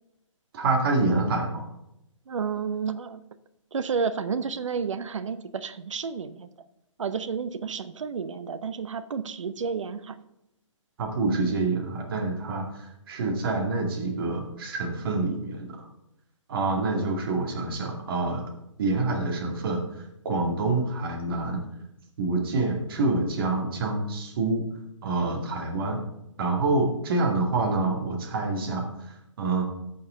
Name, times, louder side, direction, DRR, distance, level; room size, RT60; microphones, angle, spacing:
voice 1, 0.5-1.7 11.0-12.6 13.1-15.7 16.5-18.5 18.8-19.8 20.2-21.6 22.2-24.6 25.0-26.0 26.4-28.8 29.4-29.6, right 3 dB, 45° right, 1 dB, 2.2 m, -26 dB
voice 2, 2.3-3.2 3.7-6.5 7.0-10.2, right 6 dB, 65° right, 12 dB, 0.8 m, -31 dB
14.5 x 5.5 x 3.8 m, 0.86 s
figure-of-eight pair, 145°, 17 cm